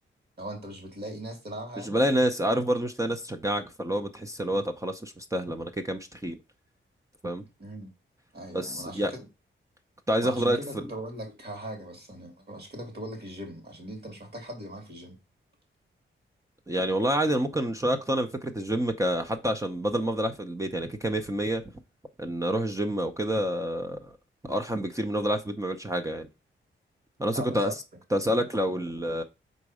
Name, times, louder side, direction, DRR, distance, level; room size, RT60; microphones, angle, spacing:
voice 1, 0.4-2.0 7.6-7.9 8.3-9.3 10.2-15.2 27.3-27.7, right 1 dB, 50° right, 2.8 m, -39 dB
voice 2, 1.8-6.4 7.2-7.4 8.5-9.1 10.1-10.8 16.7-21.6 22.2-24.1 24.4-26.3 27.2-27.7 28.1-29.2, equal, 15° right, 0.7 m, -28 dB
5.1 x 4.0 x 4.9 m
wide cardioid pair, 100°, 21 cm